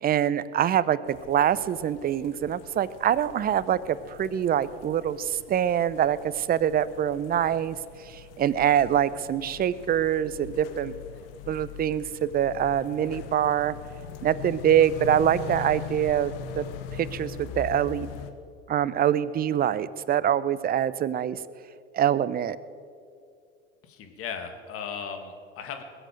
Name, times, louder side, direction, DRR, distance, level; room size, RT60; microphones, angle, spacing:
voice 1, 0.0-7.8 8.0-10.9 11.5-13.7 14.2-16.7 16.9-18.1 18.7-21.4 21.9-22.6, right 10 dB, 30° right, 17 dB, 0.6 m, -25 dB
sound 1, 1.1-18.3, left 8 dB, 65° left, 1.3 m, -41 dB
voice 2, 23.8-25.8, left 6 dB, 45° left, 6 dB, 2.3 m, -37 dB
21.0 x 8.0 x 7.6 m, 2.3 s
hypercardioid pair, 80°, 31 cm